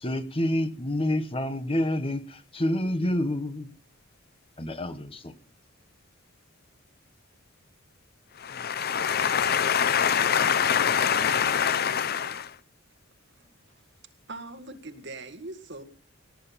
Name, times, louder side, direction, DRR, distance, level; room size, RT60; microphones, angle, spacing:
voice 1, 0.0-3.8 4.6-5.3, left 1 dB, 25° left, 1.1 m, -28 dB
voice 2, 8.3-12.6, left 8 dB, 50° left, 0.6 m, -24 dB
voice 3, 14.3-15.8, right 2 dB, 60° right, 1.9 m, -41 dB
18.0 x 9.3 x 5.8 m
head